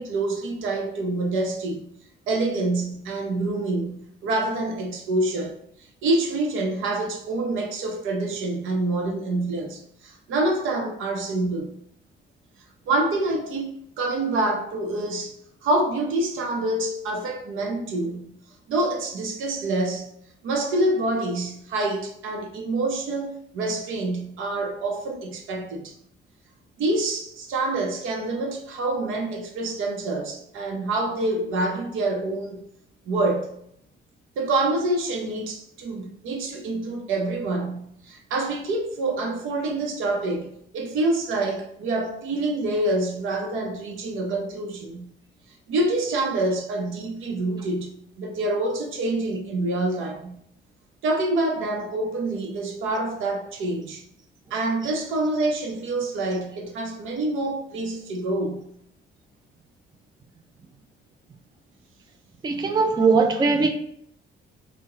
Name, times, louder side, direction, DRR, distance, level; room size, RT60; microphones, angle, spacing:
voice 1, 0.0-1.9 2.3-5.5 6.0-11.8 12.9-15.4 15.6-18.3 18.7-20.1 20.4-25.9 26.8-32.6 33.1-33.5 34.4-45.1 45.7-50.4 51.0-54.0 54.5-58.7, right 2 dB, 85° right, 0.7 m, -26 dB
voice 2, 62.4-63.7, right 4 dB, 20° right, 0.4 m, -20 dB
2.9 x 2.1 x 3.4 m
cardioid pair, 90°, 20 cm